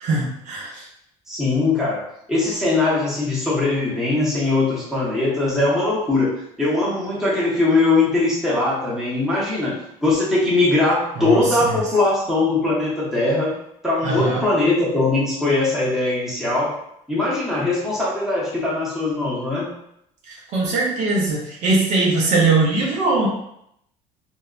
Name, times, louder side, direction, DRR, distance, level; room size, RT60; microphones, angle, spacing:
voice 1, 0.0-0.9 11.2-11.8 14.0-14.5 20.3-23.3, right 3 dB, 55° right, -3 dB, 0.7 m, -21 dB
voice 2, 1.3-9.8 10.0-13.5 13.8-16.7 17.1-19.7, left 2 dB, 5° right, -8 dB, 0.8 m, -21 dB
2.6 x 2.1 x 2.3 m, 0.75 s
cardioid pair, 140°, 15 cm